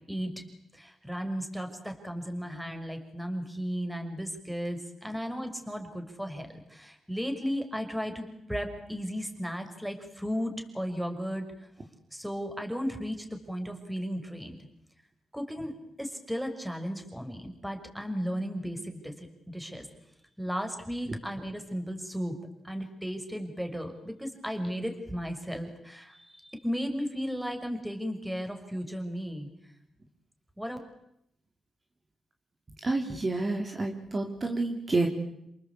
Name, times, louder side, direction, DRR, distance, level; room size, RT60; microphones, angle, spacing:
voice 1, 0.7-11.5 12.1-14.6 15.3-19.9 20.4-29.5 30.6-30.8, equal, 5° right, 5 dB, 5.9 m, -35 dB
voice 2, 32.8-35.1, right 2 dB, 35° right, 3 dB, 3.9 m, -29 dB
29.0 x 20.0 x 8.6 m, 0.79 s
cardioid pair, 70°, 0 cm